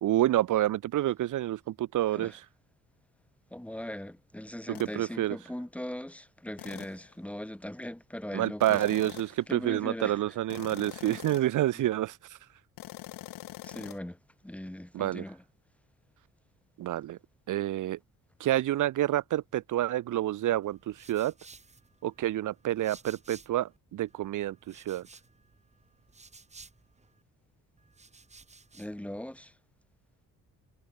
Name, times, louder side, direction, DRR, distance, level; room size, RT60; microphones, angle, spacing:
voice 1, 0.0-2.4 4.8-5.4 8.3-12.4 14.9-15.2 16.8-17.2 17.5-18.0 18.4-21.3 22.0-25.0, right 13 dB, 65° right, 0.8 m, -28 dB
voice 2, 3.5-8.8 9.5-10.2 13.6-14.2 14.4-15.4 28.7-29.5, left 1 dB, 5° left, 2.5 m, -40 dB
sound 1, 4.7-5.0 6.6-7.1 8.6-9.4 10.5-11.6 12.8-14.0, left 15 dB, 85° left, 0.9 m, -44 dB
sound 2, 20.6-23.8 24.1-27.2 27.8-29.0, right 4 dB, 20° right, 1.9 m, -55 dB
cardioid pair, 145°, 33 cm